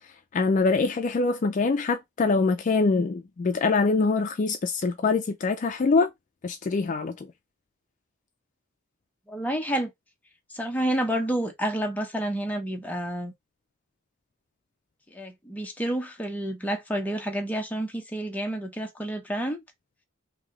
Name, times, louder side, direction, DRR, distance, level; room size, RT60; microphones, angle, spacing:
voice 1, 0.3-6.1 6.4-7.3, left 4 dB, 40° left, 0.4 m, -24 dB
voice 2, 9.3-9.9 10.5-13.3 15.1-19.6, right 1 dB, 10° left, 0.8 m, -29 dB
3.2 x 2.7 x 3.8 m
head